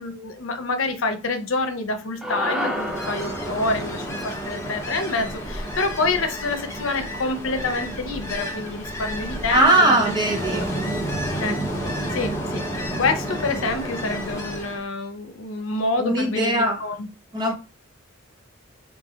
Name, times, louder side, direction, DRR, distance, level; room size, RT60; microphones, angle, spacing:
voice 1, 0.0-10.2 10.6-10.7 11.4-11.6 12.1-12.6 13.0-17.1, left 3 dB, 80° left, 0.7 m, -27 dB
sound 1, 2.2-6.7, equal, 5° right, 0.4 m, -32 dB
Ocean, 2.6-14.8, equal, 15° left, 0.9 m, -30 dB
voice 2, 9.5-10.8 16.0-16.8 17.3-17.5, right 2 dB, 20° right, 0.8 m, -20 dB
3.3 x 2.6 x 3.6 m
head